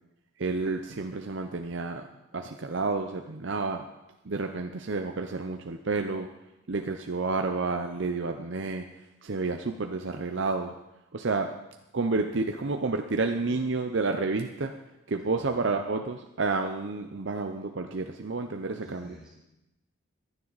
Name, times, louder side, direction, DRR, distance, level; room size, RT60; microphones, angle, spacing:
voice 1, 0.4-2.1 2.3-3.8 4.2-6.3 6.7-10.7 11.1-11.5 11.9-14.8 15.1-19.2, right 3 dB, 55° right, 5 dB, 0.6 m, -30 dB
voice 2, 18.7-19.3, left 1 dB, 5° right, -8 dB, 5.5 m, -51 dB
15.5 x 11.5 x 4.0 m, 0.93 s
head